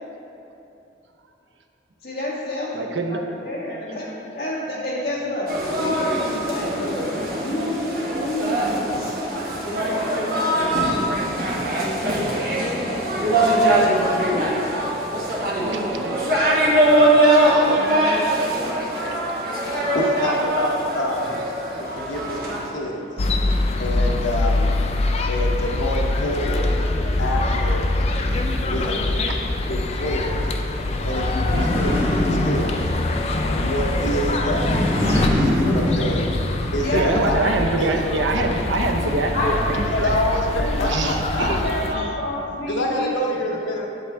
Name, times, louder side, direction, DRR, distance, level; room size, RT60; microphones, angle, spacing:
voice 1, 2.0-2.8 3.1-9.2 9.5-11.5 11.8-13.2 13.5-14.6 17.4-18.1 19.7-20.0 36.8-37.1 39.3-39.9 40.2-41.0 41.3-43.3, left 1 dB, 60° left, -7 dB, 1.9 m, -30 dB
voice 2, 2.7-3.2 15.6-16.1 17.8-17.9 29.3-29.4 31.5-32.0 36.9-40.1 40.8-41.6 41.9-42.1, right 2 dB, 85° right, 3 dB, 0.7 m, -25 dB
sound 1, 5.5-22.7, right 1 dB, 50° right, 1.4 m, -22 dB
voice 3, 19.6-21.5 21.8-24.7 25.3-26.8 27.2-27.8 28.4-29.2 29.7-30.5 31.0-32.8 33.2-36.3 36.7-37.4 37.8-38.0 39.9-41.7 42.7-43.9, equal, 90° left, 0 dB, 0.9 m, -27 dB
sound 2, 23.2-41.9, left 2 dB, 35° left, 0.4 m, -24 dB
sound 3, 31.4-33.0 34.4-36.5, left 1 dB, 10° right, 1.5 m, -23 dB
8.3 x 7.9 x 3.5 m, 2.9 s
head